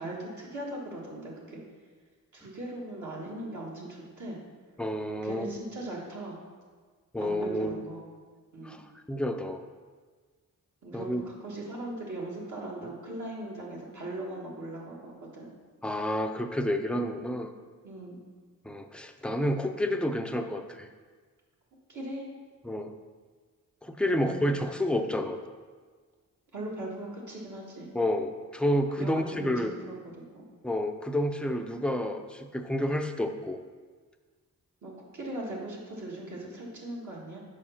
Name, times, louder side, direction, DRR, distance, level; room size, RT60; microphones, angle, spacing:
voice 1, 0.0-1.6 2.3-4.4 5.2-6.4 7.1-8.0 8.5-8.8 10.8-15.5 17.8-18.2 21.9-22.2 24.0-24.6 26.5-27.9 29.0-30.0 30.3-30.4 34.8-37.4, right 1 dB, 60° right, -4 dB, 1.6 m, -39 dB
voice 2, 4.8-5.5 7.1-7.8 8.6-8.8 9.1-9.6 10.9-11.2 15.8-17.5 18.6-20.9 22.6-22.9 23.8-25.4 27.9-29.8 30.6-33.6, equal, 5° left, 6 dB, 0.5 m, -29 dB
4.9 x 4.9 x 5.6 m, 1.5 s
cardioid pair, 65°, 34 cm